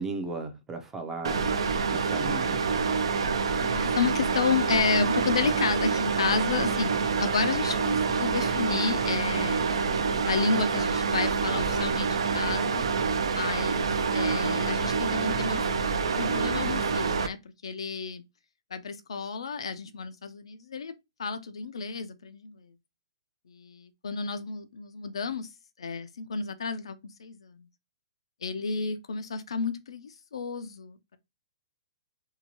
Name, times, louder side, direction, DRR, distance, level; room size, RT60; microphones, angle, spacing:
voice 1, 0.0-1.5 1.9-2.6, right 2 dB, 10° right, 0.4 m, -35 dB
sound 1, 1.2-17.3, right 5 dB, 80° right, 0.4 m, -27 dB
voice 2, 3.6-6.9 7.2-9.7 10.2-12.8 13.3-15.8 16.1-17.4 17.6-18.2 18.7-20.9 21.2-22.6 23.5-25.5 25.8-27.6 28.4-31.2, left 5 dB, 85° left, 0.4 m, -31 dB
2.8 x 2.2 x 2.8 m
hypercardioid pair, 150°, 3 cm